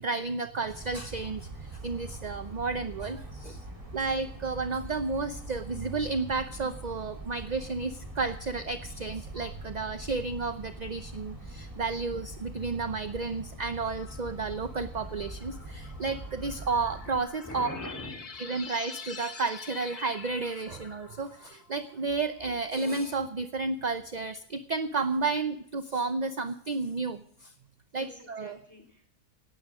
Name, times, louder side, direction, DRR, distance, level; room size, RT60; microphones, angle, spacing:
voice 1, 0.0-3.6 3.9-17.7 18.4-27.5 27.9-28.6, right 4 dB, 40° right, 10 dB, 0.6 m, -32 dB
sound 1, 0.6-17.2, right 2 dB, 20° right, 3.2 m, -43 dB
sound 2, 14.0-22.2, left 5 dB, 80° left, 2.3 m, -46 dB
voice 2, 17.4-18.3 28.0-29.1, left 1 dB, 10° left, 4 dB, 4.0 m, -42 dB
17.5 x 12.5 x 4.9 m, 0.64 s
omnidirectional pair, 1.6 m